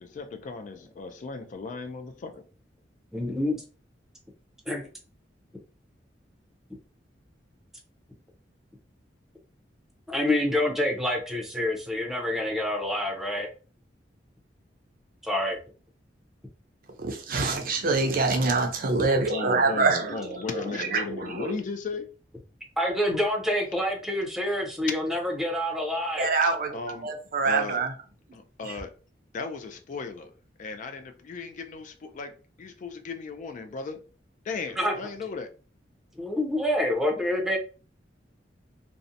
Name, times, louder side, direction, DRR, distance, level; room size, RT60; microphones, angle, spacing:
voice 1, 0.0-2.4 19.1-22.1 26.4-27.1 27.4-27.8 28.3-28.9 29.3-30.3 30.6-34.1 34.4-35.5, left 4 dB, 45° left, 0.3 m, -36 dB
voice 2, 3.1-3.6 4.7-4.8 10.1-13.5 15.2-15.6 22.8-26.3 34.8-34.9 36.2-37.6, left 1 dB, ahead, 0.6 m, -27 dB
voice 3, 17.0-21.5 26.2-27.9 28.6-28.8, right 3 dB, 55° right, 0.5 m, -26 dB
2.6 x 2.1 x 2.6 m
head